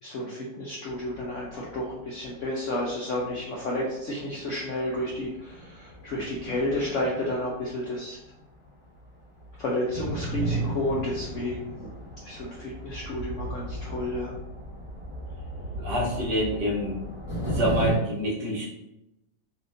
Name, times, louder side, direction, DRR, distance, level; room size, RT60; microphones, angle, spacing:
voice 1, 0.0-8.2 9.6-11.9 12.2-14.4, left 1 dB, 70° left, -4 dB, 0.7 m, -31 dB
sound 1, 1.1-1.9 2.2-2.4 3.2-3.3 3.9-4.0 4.3-8.7 8.9-18.0, right 1 dB, 45° left, 1.5 m, -35 dB
voice 2, 15.8-17.0 17.4-18.7, equal, 80° right, -5 dB, 1.7 m, -27 dB
4.2 x 2.5 x 2.6 m, 0.89 s
omnidirectional pair, 1.9 m